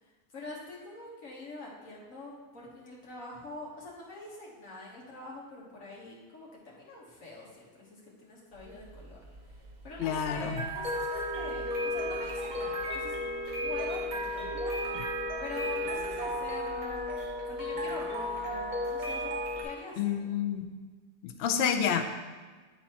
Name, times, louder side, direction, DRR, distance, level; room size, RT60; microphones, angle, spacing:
voice 1, 0.3-9.2 9.5-13.2 13.6-14.8 15.4-17.2 17.5-19.3 19.6-20.4, left 2 dB, 55° left, -4 dB, 1.6 m, -44 dB
sound 1, 8.6-19.6, left 1 dB, 40° right, 0.8 m, -34 dB
voice 2, 10.0-10.6 20.0-20.7 21.2-22.1, left 8 dB, 85° left, 5 dB, 0.5 m, -29 dB
9.0 x 4.0 x 2.9 m, 1.4 s
omnidirectional pair, 1.7 m